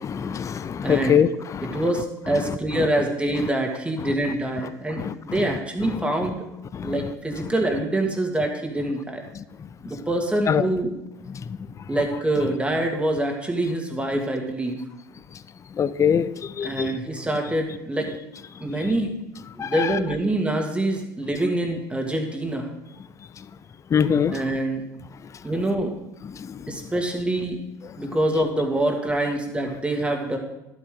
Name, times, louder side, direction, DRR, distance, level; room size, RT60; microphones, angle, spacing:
voice 1, 0.0-1.8 5.0-5.5 6.7-6.9 10.5-10.7 15.8-17.0 19.6-19.9 23.9-24.4 26.4-26.6, left 7 dB, 30° left, 14 dB, 0.5 m, -23 dB
voice 2, 0.8-1.2 1.7-6.4 6.8-9.2 9.8-10.9 11.9-14.8 16.6-18.2 18.6-19.1 19.6-22.7 24.3-24.9 25.4-25.9 26.7-27.6 28.0-30.4, right 1 dB, 10° right, 2 dB, 2.2 m, -25 dB
11.5 x 8.4 x 3.8 m, 0.93 s
hypercardioid pair, 75°, 10 cm